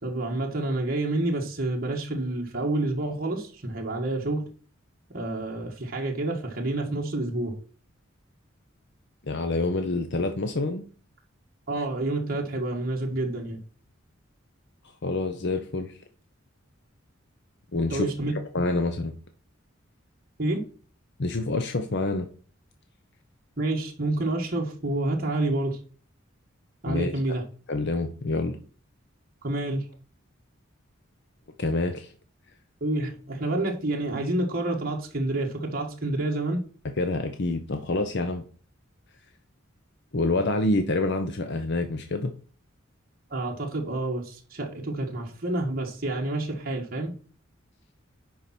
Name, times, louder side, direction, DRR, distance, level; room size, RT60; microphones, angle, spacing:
voice 1, 0.0-4.4 5.1-7.5 11.7-13.6 17.9-18.3 20.4-20.6 23.6-25.8 26.8-27.4 29.4-29.8 32.8-36.6 43.3-47.1, right 2 dB, 45° right, -1 dB, 1.7 m, -28 dB
voice 2, 9.2-10.8 15.0-16.0 17.7-18.1 18.5-19.1 21.2-22.3 26.9-27.1 27.7-28.6 31.6-32.1 37.0-38.4 40.1-42.3, left 2 dB, 60° left, 7 dB, 0.8 m, -27 dB
10.5 x 4.8 x 4.3 m, 0.40 s
head